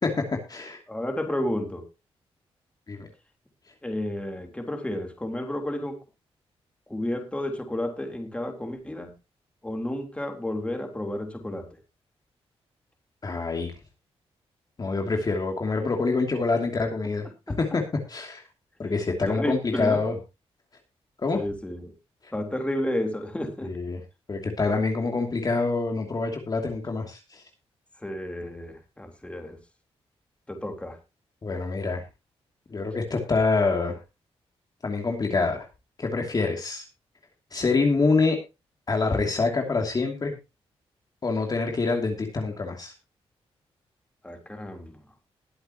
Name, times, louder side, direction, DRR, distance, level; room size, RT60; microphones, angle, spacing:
voice 1, 0.0-0.8 2.9-3.1 13.2-13.7 14.8-17.3 17.6-18.4 18.8-20.1 21.2-21.4 23.6-24.0 24.3-27.4 31.4-32.0 32.7-34.0 34.8-35.7 36.0-36.8 37.5-38.4 38.9-40.4 41.2-42.9, left 3 dB, 40° left, 2 dB, 2.7 m, -26 dB
voice 2, 0.9-1.8 3.8-6.0 6.9-9.1 9.6-11.7 17.5-17.6 19.3-20.0 21.3-21.9 22.3-23.7 28.0-29.6 30.5-31.0 44.2-45.0, left 1 dB, 10° left, 4 dB, 3.6 m, -31 dB
21.0 x 7.9 x 3.0 m, 0.27 s
cardioid pair, 95°, 11 cm